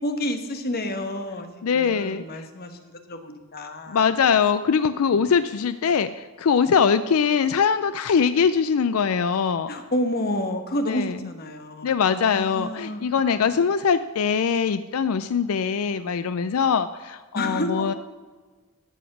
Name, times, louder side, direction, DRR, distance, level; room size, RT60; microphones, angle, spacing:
voice 1, 0.0-4.1 9.7-13.4 17.3-17.9, left 1 dB, 45° left, 6 dB, 1.2 m, -30 dB
voice 2, 1.6-2.4 3.9-9.7 10.9-11.2 11.8-17.9, left 6 dB, 75° left, 12 dB, 0.4 m, -22 dB
12.5 x 7.2 x 6.0 m, 1.4 s
head